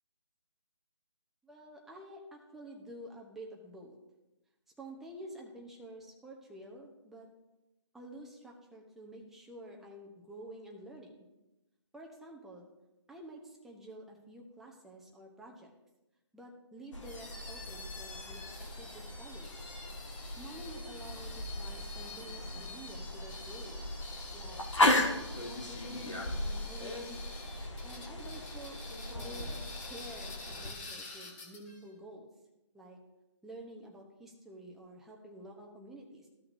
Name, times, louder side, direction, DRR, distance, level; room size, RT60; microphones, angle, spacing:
voice 1, 1.4-4.0 4.8-7.3 7.9-11.1 11.9-12.7 13.1-15.7 16.3-19.7 20.4-23.9 24.3-27.2 27.8-28.8 29.1-29.6 29.9-32.3 32.7-33.0 33.4-36.3, right 1 dB, ahead, -1 dB, 0.8 m, -49 dB
sound 1, 16.9-30.7, left 1 dB, 90° left, 1.6 m, -36 dB
sound 2, 17.0-31.8, left 3 dB, 25° left, 1.6 m, -48 dB
14.5 x 5.7 x 2.6 m, 0.99 s
figure-of-eight pair, 155°, 15 cm